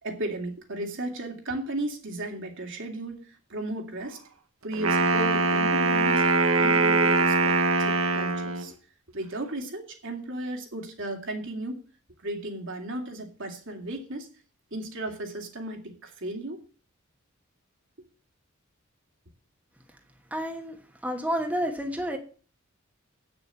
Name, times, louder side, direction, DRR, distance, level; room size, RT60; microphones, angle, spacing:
voice 1, 0.0-4.2 4.6-6.3 6.6-8.8 9.1-11.8 12.2-14.3 14.7-16.6, right 1 dB, 60° right, 2 dB, 2.6 m, -35 dB
Wind instrument woodwind instrument, 4.7-8.7, right 3 dB, 85° right, 1.5 m, -22 dB
voice 2, 20.3-20.8 21.0-22.2, equal, 5° right, 2 dB, 1.3 m, -29 dB
8.9 x 6.9 x 8.1 m, 0.39 s
head